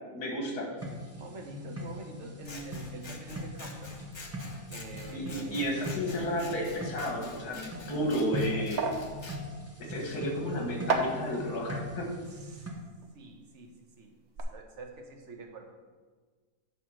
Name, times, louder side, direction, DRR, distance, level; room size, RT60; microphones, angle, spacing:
voice 1, 0.1-0.7 5.1-8.8 9.8-12.1, equal, 75° left, 1 dB, 2.1 m, -32 dB
sound 1, 0.8-12.7, left 1 dB, 10° right, 0.9 m, -40 dB
voice 2, 1.1-4.0 4.7-5.7 10.0-10.2 12.3-12.7 13.1-14.1 14.5-15.7, right 3 dB, 55° right, 3 dB, 1.2 m, -46 dB
Scissors, 2.4-9.4, left 2 dB, 30° left, 0.5 m, -47 dB
sound 2, 8.0-13.9 14.1-14.4, right 3 dB, 75° right, 1.3 m, -36 dB
10.0 x 3.6 x 6.2 m, 1.5 s
omnidirectional pair, 1.7 m